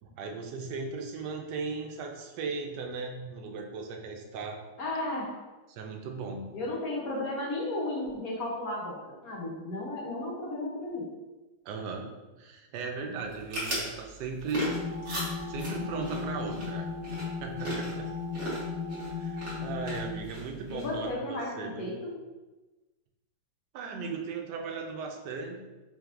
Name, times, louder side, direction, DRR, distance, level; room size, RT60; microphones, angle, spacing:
voice 1, 0.0-4.6 5.7-6.5 11.6-12.1 12.4-14.7 15.5-18.1 19.1-21.9 23.7-25.6, right 4 dB, 80° right, 3 dB, 1.2 m, -37 dB
voice 2, 4.8-5.4 6.5-11.1 20.7-22.2, left 2 dB, 65° left, -2 dB, 1.2 m, -34 dB
sound 1, 13.2-21.1, right 1 dB, 45° right, 1.5 m, -38 dB
sound 2, 14.5-20.1, left 5 dB, 20° right, 1.0 m, -36 dB
4.9 x 3.1 x 2.5 m, 1.1 s
omnidirectional pair, 1.8 m